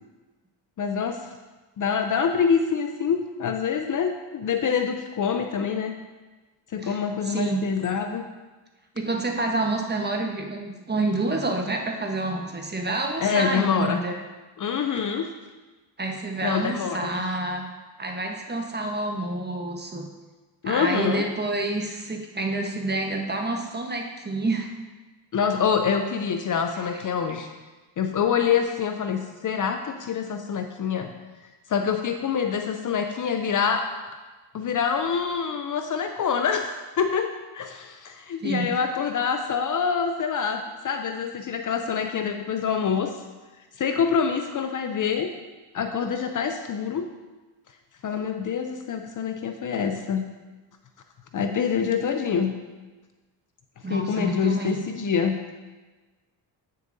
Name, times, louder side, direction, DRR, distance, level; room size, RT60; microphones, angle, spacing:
voice 1, 0.8-1.2 1.8-5.9 6.7-8.2 13.2-14.0 14.6-15.3 16.4-17.2 20.6-21.3 25.3-27.5 28.0-31.1 31.7-33.9 34.5-43.1 43.8-45.3 45.7-47.1 48.0-50.2 51.3-52.5 53.9-55.4, left 6 dB, 45° left, 6 dB, 0.6 m, -26 dB
voice 2, 7.2-7.6 8.9-14.2 16.0-17.7 18.0-20.1 20.6-24.7 26.8-27.0 38.4-38.7 53.8-54.8, right 2 dB, 20° right, 2 dB, 1.1 m, -28 dB
8.5 x 6.6 x 2.7 m, 1.2 s
supercardioid pair, 75°, 46 cm